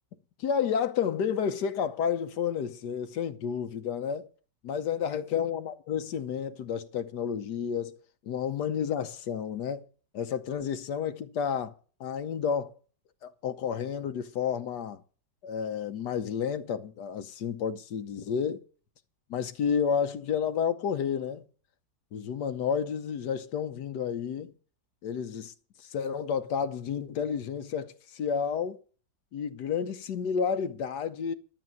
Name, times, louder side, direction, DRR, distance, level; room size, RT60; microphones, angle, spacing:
voice 1, 0.4-4.3 4.6-8.0 8.3-9.8 10.1-11.7 12.0-12.7 13.2-15.0 15.4-18.6 19.3-21.4 22.1-24.5 25.0-25.5 25.8-28.8 29.3-31.3, left 7 dB, 70° left, 1.4 m, -31 dB
12.5 x 7.1 x 7.6 m
omnidirectional pair, 1.9 m